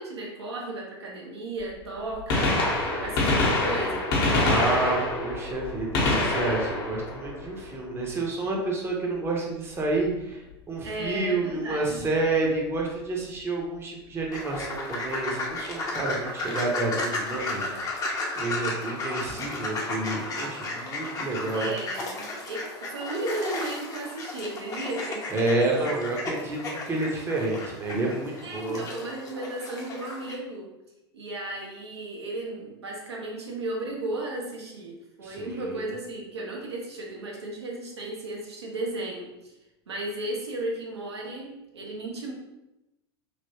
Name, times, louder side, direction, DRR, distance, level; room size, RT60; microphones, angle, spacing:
voice 1, 0.0-4.1 10.8-12.0 21.5-25.3 28.4-30.7 31.1-39.5 39.9-42.3, right 2 dB, 75° right, -2 dB, 0.8 m, -35 dB
Gunshot gunfire, 1.6-1.7 2.1-8.0 10.0-10.1 11.1-11.2 12.8-12.9 14.3-14.4 14.6-14.7, left 2 dB, 55° left, 1.0 m, -26 dB
voice 2, 4.3-18.1 18.4-21.7 25.3-26.6 26.9-28.8 35.2-35.9, right 2 dB, 15° right, -2 dB, 0.7 m, -29 dB
sound 1, 14.3-30.4, left 2 dB, 25° left, 0.7 m, -34 dB
3.2 x 2.9 x 2.7 m, 0.96 s
figure-of-eight pair, 85°, 14 cm